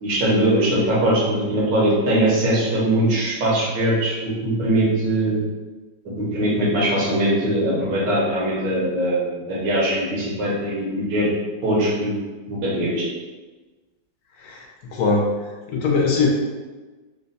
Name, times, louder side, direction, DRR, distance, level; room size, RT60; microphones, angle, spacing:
voice 1, 0.0-5.4 6.2-11.3 11.6-12.2 12.5-13.0, right 1 dB, 75° right, -5 dB, 1.7 m, -21 dB
voice 2, 14.4-15.3 15.7-16.3, left 4 dB, 65° left, -1 dB, 1.1 m, -21 dB
3.8 x 2.2 x 4.0 m, 1.3 s
omnidirectional pair, 2.0 m